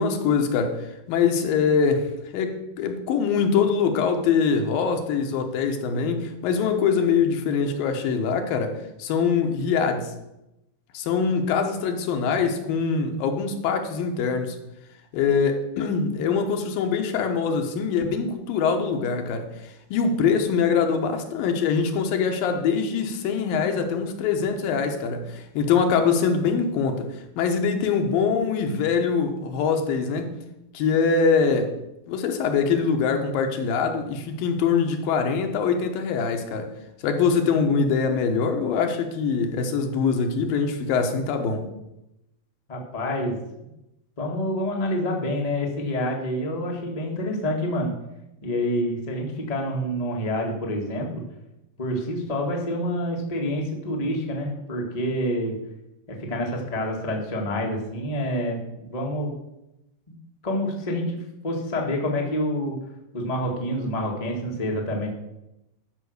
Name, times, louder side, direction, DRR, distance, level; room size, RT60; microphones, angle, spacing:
voice 1, 0.0-10.1 10.9-14.6 15.1-30.3 30.7-31.7 32.1-36.7 37.0-41.6, left 5 dB, 75° left, 5 dB, 2.8 m, -23 dB
voice 2, 42.7-43.3 44.2-47.9 48.4-51.2 51.8-55.6 56.1-59.3 60.4-62.7 63.1-65.1, equal, 30° left, 0 dB, 0.7 m, -27 dB
12.5 x 5.8 x 6.5 m, 0.90 s
omnidirectional pair, 4.2 m